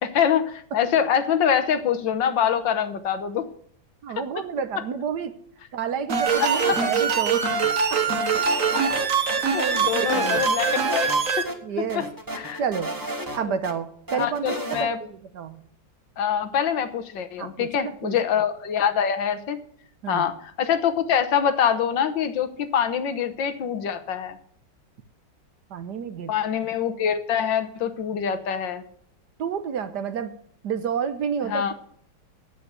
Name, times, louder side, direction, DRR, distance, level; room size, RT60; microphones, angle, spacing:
voice 1, 0.0-3.5 6.4-6.8 8.7-9.1 9.4-11.5 11.9-12.0 12.3-12.6 13.3-13.4 14.1-15.0 16.2-19.6 20.1-24.4 26.3-28.8 31.5-31.7, left 8 dB, 75° left, 9 dB, 1.7 m, -25 dB
voice 2, 4.0-5.3 5.7-7.5 7.9-8.2 9.6-10.5 11.6-12.1 12.6-12.9 13.3-15.6 17.4-18.2 20.0-20.3 25.7-26.3 29.4-30.3 30.6-31.7, right 7 dB, 65° right, 11 dB, 1.4 m, -30 dB
sound 1, 6.1-11.4, right 5 dB, 45° right, 1.6 m, -23 dB
sound 2, 6.3-7.2 7.5-9.0 9.3-9.4 9.7-11.2 11.5-11.6 11.9-13.7 14.1-14.8, right 1 dB, 10° right, 1.2 m, -33 dB
9.0 x 8.3 x 8.1 m, 0.63 s
omnidirectional pair, 2.1 m